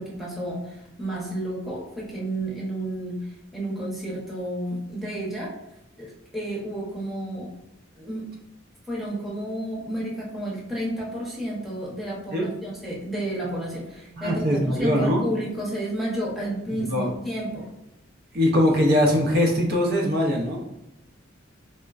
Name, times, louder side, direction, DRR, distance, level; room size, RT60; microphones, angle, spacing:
voice 1, 0.0-5.5 6.0-7.5 8.0-8.2 8.9-17.7, right 1 dB, ahead, -6 dB, 0.8 m, -31 dB
voice 2, 14.2-15.2 16.7-17.1 18.3-20.7, equal, 55° right, -1 dB, 0.5 m, -22 dB
4.1 x 2.1 x 2.3 m, 0.89 s
head